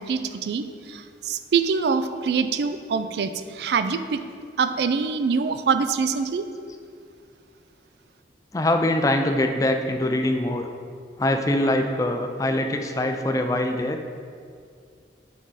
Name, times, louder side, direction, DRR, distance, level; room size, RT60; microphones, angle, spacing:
voice 1, 0.0-4.2 4.6-6.4, right 5 dB, 70° right, 10 dB, 0.3 m, -24 dB
voice 2, 8.5-10.7 11.2-14.0, left 1 dB, 20° left, 5 dB, 0.3 m, -23 dB
5.9 x 4.8 x 4.0 m, 2.2 s
head